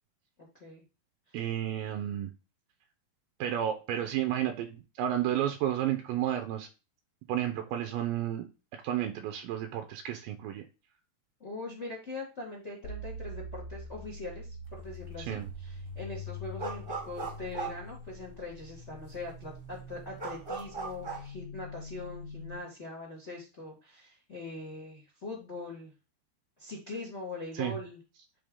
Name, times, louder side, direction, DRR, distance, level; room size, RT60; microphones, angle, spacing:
voice 1, 1.3-2.3 3.4-6.7 7.3-10.6 15.2-15.5 27.5-27.7, right 11 dB, 80° right, 6 dB, 2.1 m, -32 dB
voice 2, 11.4-25.9 26.6-28.0, left 2 dB, 85° left, -1 dB, 0.6 m, -42 dB
sound 1, 12.8-22.6, left 1 dB, 65° left, 2.3 m, -44 dB
sound 2, 14.7-15.1 15.4-18.6 19.1-19.2 19.4-21.3, right 4 dB, 40° right, 0.7 m, -39 dB
10.0 x 3.6 x 3.6 m, 0.32 s
omnidirectional pair, 4.5 m